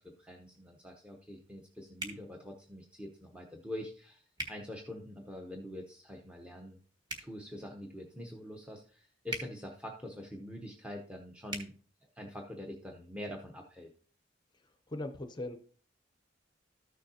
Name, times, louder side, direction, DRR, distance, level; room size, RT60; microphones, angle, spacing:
voice 1, 0.2-6.8 7.2-11.7 12.1-13.9, left 1 dB, 5° right, 1 dB, 0.8 m, -45 dB
sound 1, 2.0-2.2 4.3-4.5 7.0-7.3 9.3-9.5 11.5-11.7, right 1 dB, 25° right, 1.6 m, -38 dB
voice 2, 14.9-15.6, left 1 dB, 25° left, 7 dB, 0.6 m, -39 dB
13.5 x 6.4 x 2.8 m, 0.43 s
head